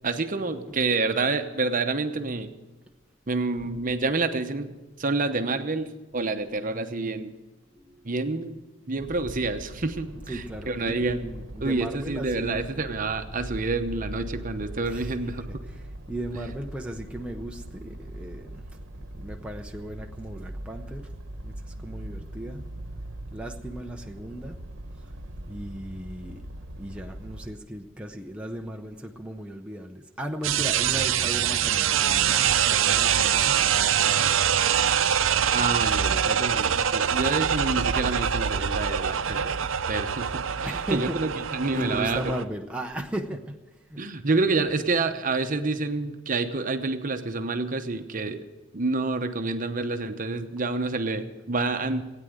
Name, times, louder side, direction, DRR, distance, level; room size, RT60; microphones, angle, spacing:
voice 1, 0.0-2.5 3.3-4.7 5.0-7.3 8.0-8.6 8.9-11.2 11.6-15.4 35.5-39.5 39.9-42.2 44.0-48.4 48.7-52.0, right 3 dB, 45° right, 8 dB, 0.9 m, -28 dB
voice 2, 7.7-8.1 10.3-12.7 14.8-21.1 21.4-23.0 23.3-26.5 26.8-34.3 40.6-41.4 41.7-44.1, right 1 dB, 5° right, 2 dB, 0.7 m, -37 dB
sound 1, 9.0-27.5, right 1 dB, 70° right, 1.1 m, -41 dB
sound 2, 30.4-42.4, right 8 dB, 90° right, 0.6 m, -24 dB
16.5 x 9.3 x 7.9 m, 1.1 s
head